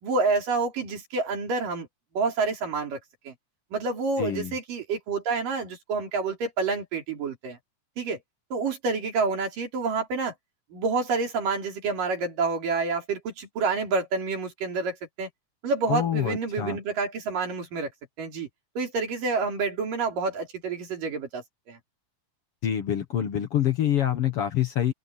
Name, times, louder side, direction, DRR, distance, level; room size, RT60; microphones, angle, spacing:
voice 1, 0.0-1.9 2.2-3.0 3.3-3.4 3.7-7.6 8.0-8.2 8.5-10.3 10.7-15.3 15.6-17.9 18.2-18.5 18.8-21.8, right 4 dB, 85° right, 5.7 m, -28 dB
voice 2, 4.2-4.5 15.9-16.8 22.6-24.9, left 11 dB, 55° left, 1.8 m, -26 dB
open air
omnidirectional pair, 3.7 m